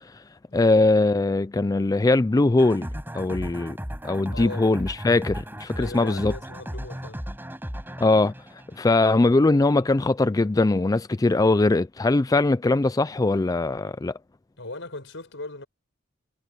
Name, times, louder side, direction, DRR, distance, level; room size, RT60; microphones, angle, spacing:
voice 1, 0.5-2.9 3.1-3.8 4.0-6.3 8.0-8.3 8.8-14.1, left 2 dB, 20° left, 0.4 m, -21 dB
sound 1, 2.6-9.3, equal, 10° right, 5.5 m, -36 dB
voice 2, 4.3-4.7 5.7-7.3 14.6-15.7, left 2 dB, 65° left, 6.7 m, -38 dB
head